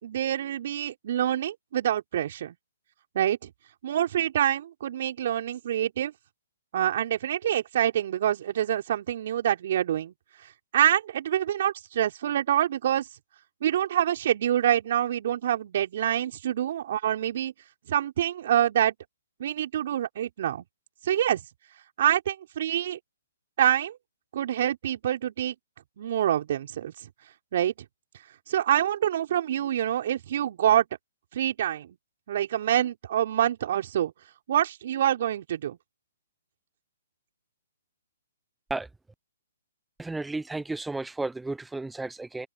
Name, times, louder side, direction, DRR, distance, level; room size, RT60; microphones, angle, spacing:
voice 1, 0.0-2.5 3.1-3.5 3.8-6.1 6.7-10.1 10.7-13.1 13.6-17.5 17.9-18.9 19.4-20.6 21.0-21.4 22.0-23.0 23.6-24.0 24.3-25.5 26.0-26.9 27.5-27.7 28.5-30.9 31.3-32.0 32.3-34.1 34.5-35.8, right 11 dB, 55° right, 4.6 m, -26 dB
voice 2, 40.0-42.5, right 2 dB, 5° right, 0.4 m, -33 dB
open air
hypercardioid pair, 135°, 0 cm